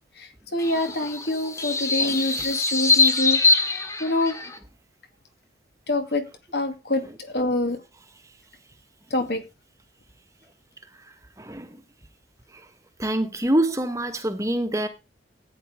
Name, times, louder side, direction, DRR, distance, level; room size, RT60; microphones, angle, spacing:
voice 1, 0.2-3.4 4.0-4.4 5.9-6.2 6.5-7.8 9.1-9.4, left 1 dB, 65° left, 2.3 m, -26 dB
sound 1, 0.6-4.6, left 4 dB, 15° left, 1.3 m, -23 dB
voice 2, 11.4-11.8 12.5-12.7 13.0-14.9, right 1 dB, 15° right, 1.4 m, -25 dB
14.0 x 9.5 x 3.6 m
head